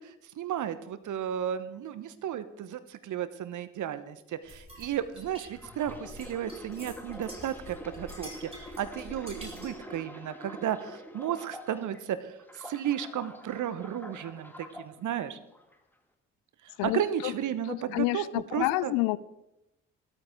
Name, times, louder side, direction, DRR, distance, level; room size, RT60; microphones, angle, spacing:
voice 1, 0.0-15.4 16.6-18.9, right 10 dB, 55° right, 13 dB, 0.9 m, -34 dB
sound 1, 4.5-9.8, equal, 15° right, 4.3 m, -47 dB
sound 2, 5.5-12.0 12.4-14.9 15.5-15.8, equal, 5° left, 2.0 m, -46 dB
voice 2, 16.8-17.3 17.7-19.2, left 20 dB, 65° left, 19 dB, 0.5 m, -29 dB
14.5 x 13.0 x 3.6 m, 0.91 s
figure-of-eight pair, 40°, 37 cm